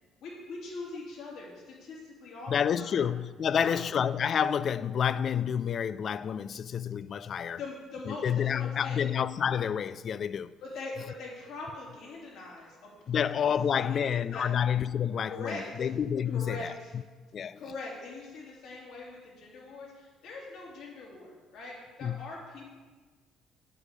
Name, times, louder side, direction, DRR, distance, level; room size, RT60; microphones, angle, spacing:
voice 1, 0.2-3.1 3.5-3.8 7.6-9.1 10.6-13.3 13.7-14.4 15.3-15.9 16.3-16.9 17.6-22.7, left 3 dB, 75° left, 3.3 m, -42 dB
voice 2, 2.5-7.6 8.1-10.5 13.1-17.0 17.3-17.6 22.0-22.3, left 8 dB, 55° left, 0.4 m, -29 dB
8.3 x 8.2 x 5.3 m
supercardioid pair, 80°, 0 cm